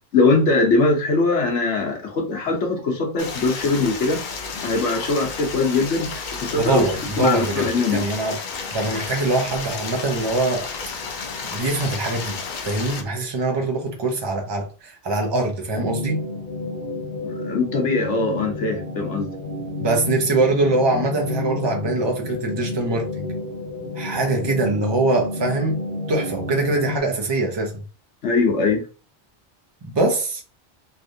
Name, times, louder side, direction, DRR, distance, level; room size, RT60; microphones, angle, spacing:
voice 1, 0.1-4.2 4.6-6.8 7.2-8.0 17.2-19.3 28.2-28.8, left 3 dB, 80° left, 1.2 m, -21 dB
Stream, 3.2-13.0, left 5 dB, 55° left, 0.6 m, -32 dB
voice 2, 6.6-8.4 8.7-10.7 11.4-12.4 12.6-16.3 19.8-23.3 23.9-27.8 29.8-30.4, right 2 dB, 25° right, 0.7 m, -23 dB
sound 1, 15.7-27.0, left 2 dB, 40° right, 1.2 m, -30 dB
3.3 x 2.5 x 2.6 m
omnidirectional pair, 1.2 m